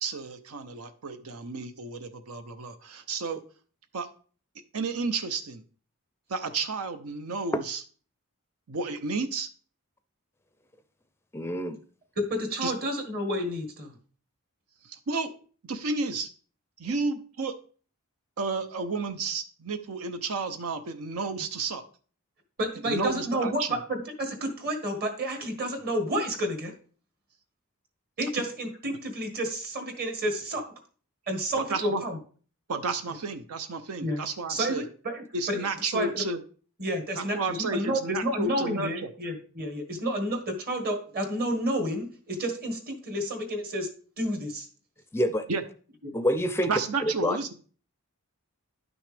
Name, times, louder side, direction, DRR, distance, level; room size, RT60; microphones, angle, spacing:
voice 1, 0.0-3.4 3.9-4.1 4.7-5.6 6.3-7.8 8.7-9.5 12.6-12.7 14.8-15.3 15.7-16.3 16.8-17.5 18.4-21.8 22.8-23.8 31.7-32.0 32.7-34.8 35.3-36.4 37.2-39.1 45.5-45.6 46.7-47.5, right 4 dB, 85° right, 8 dB, 0.7 m, -31 dB
voice 2, 11.3-11.8 45.1-45.5 46.1-46.7 47.0-47.4, equal, 10° left, 10 dB, 0.4 m, -26 dB
voice 3, 12.2-14.0 22.6-26.7 28.2-30.6 31.3-32.2 34.0-34.2 34.5-35.6 35.9-36.2 36.8-43.9 44.2-44.7 46.0-46.1, equal, 45° right, 5 dB, 1.7 m, -30 dB
10.5 x 6.2 x 3.4 m, 0.42 s
head